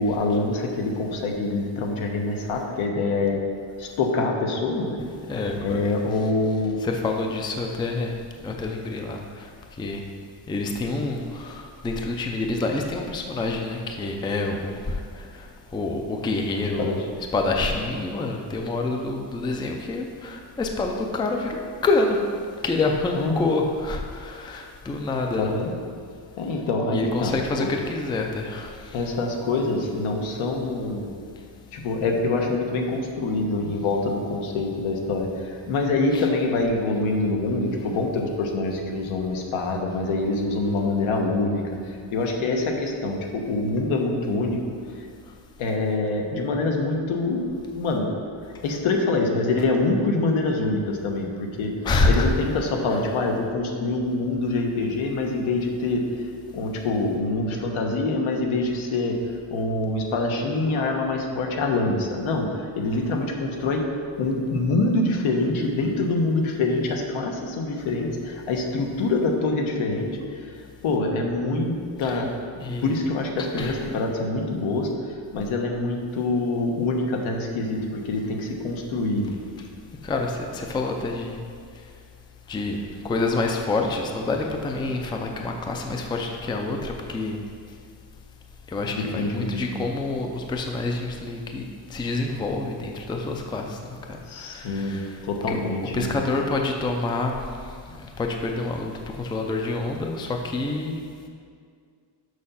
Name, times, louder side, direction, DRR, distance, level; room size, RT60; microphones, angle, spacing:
voice 1, 0.0-3.4 3.8-5.0 5.6-6.8 16.8-17.0 23.2-23.4 25.4-25.7 26.4-27.7 28.9-31.1 31.7-44.6 44.9-45.1 45.6-48.1 48.6-51.7 52.1-56.3 56.5-59.2 59.5-63.8 64.2-71.7 72.0-72.3 72.8-79.4 89.0-89.8 94.3-96.2, left 2 dB, 90° left, 2 dB, 1.2 m, -25 dB
voice 2, 5.3-6.3 6.8-8.1 8.4-10.0 10.5-17.0 17.3-22.2 22.6-25.6 26.9-29.1 36.1-36.3 51.8-52.3 52.9-53.2 72.0-72.2 72.6-73.0 73.4-74.0 80.0-81.4 82.5-82.8 83.0-87.4 88.7-93.8 94.1-95.6 95.9-97.3 97.9-101.0, left 3 dB, 10° left, 2 dB, 0.3 m, -27 dB
6.5 x 5.8 x 5.5 m, 2.1 s
cardioid pair, 180°, 47 cm